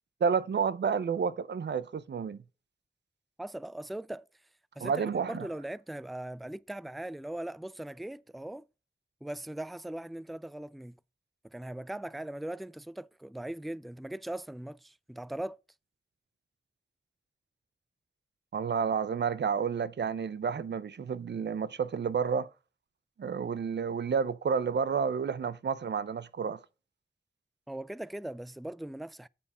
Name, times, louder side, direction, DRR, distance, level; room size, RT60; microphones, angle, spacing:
voice 1, 0.2-2.4 4.8-5.5 18.5-22.5 23.2-26.6, right 6 dB, 85° right, 0.5 m, -30 dB
voice 2, 3.4-4.3 4.8-8.7 9.2-11.0 11.4-15.6 27.7-29.3, right 1 dB, ahead, 0.3 m, -40 dB
7.6 x 5.5 x 4.8 m
wide cardioid pair, 55°, 17 cm